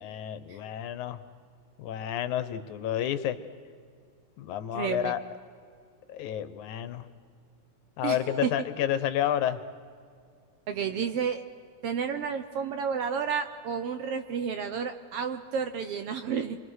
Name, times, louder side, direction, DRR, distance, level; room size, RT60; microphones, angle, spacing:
voice 1, 0.0-1.2 1.8-3.4 4.4-5.2 6.1-7.1 8.0-9.6, left 11 dB, 80° left, 12 dB, 2.4 m, -30 dB
voice 2, 4.7-5.1 8.0-8.2 8.4-8.5 10.7-11.4 11.8-16.6, right 7 dB, 65° right, 8 dB, 1.5 m, -31 dB
28.5 x 23.5 x 6.4 m, 2.2 s
omnidirectional pair, 3.4 m